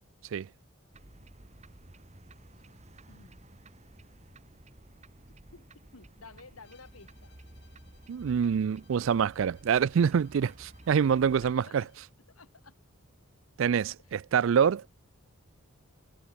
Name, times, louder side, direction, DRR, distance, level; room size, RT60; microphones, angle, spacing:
sound 1, 0.9-11.5, right 1 dB, 30° right, 1.8 m, -53 dB
voice 1, 5.9-7.3 11.4-11.9 12.4-12.7, left 4 dB, 90° left, 2.2 m, -52 dB
Bowed string instrument, 6.6-12.1, left 7 dB, 55° left, 7.6 m, -67 dB
voice 2, 8.1-11.8 13.6-14.8, right 7 dB, 65° right, 0.3 m, -26 dB
head